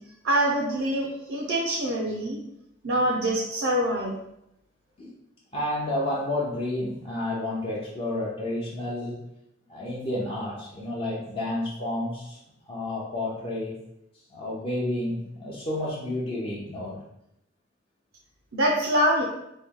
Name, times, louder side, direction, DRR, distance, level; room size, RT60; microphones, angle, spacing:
voice 1, 0.2-2.4 2.8-4.2 18.5-19.2, right 1 dB, 90° right, -2 dB, 0.6 m, -24 dB
voice 2, 5.5-9.2 9.7-12.4 12.7-13.7 14.3-17.0, left 1 dB, 30° left, -6 dB, 0.6 m, -30 dB
3.1 x 2.2 x 3.6 m, 0.81 s
head